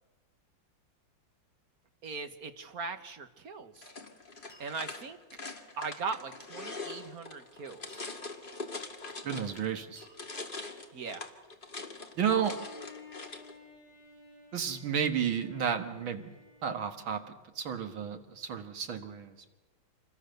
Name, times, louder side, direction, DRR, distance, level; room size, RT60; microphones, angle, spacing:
voice 1, 2.0-3.9 4.6-5.2 5.8-8.0 10.9-11.2, right 4 dB, 50° right, 8 dB, 1.6 m, -39 dB
sound 1, 3.5-3.9 4.5-5.2 7.9-8.6 10.0-10.8, equal, 5° right, 8.0 m, -61 dB
sound 2, 3.8-9.7 10.0-13.5, left 3 dB, 25° left, 1.9 m, -43 dB
voice 2, 9.2-10.1 12.2-12.6 14.5-16.3 16.6-19.5, right 7 dB, 80° right, 7 dB, 2.3 m, -32 dB
Bowed string instrument, 12.3-17.3, left 4 dB, 50° left, 6.0 m, -55 dB
27.5 x 22.0 x 6.7 m, 1.2 s
omnidirectional pair, 2.2 m